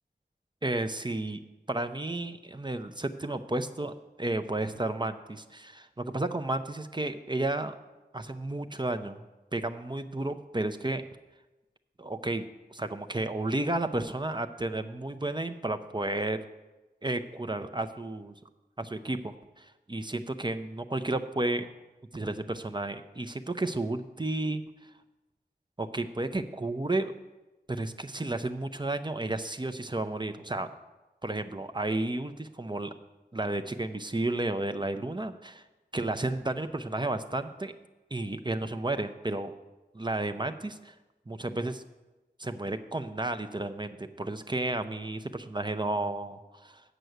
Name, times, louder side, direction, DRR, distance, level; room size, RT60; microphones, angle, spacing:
voice 1, 0.6-1.4 1.7-7.7 8.1-9.2 9.5-11.0 12.0-12.4 12.7-16.4 17.0-18.3 18.8-21.7 22.1-24.6 25.8-27.1 27.7-30.7 31.2-32.9 33.3-35.6 35.9-37.7 38.1-39.5 39.9-40.9 41.3-41.8 42.4-46.8, right 2 dB, 25° right, 8 dB, 0.6 m, -32 dB
8.0 x 6.1 x 7.9 m, 1.1 s
wide cardioid pair, 40°, 18 cm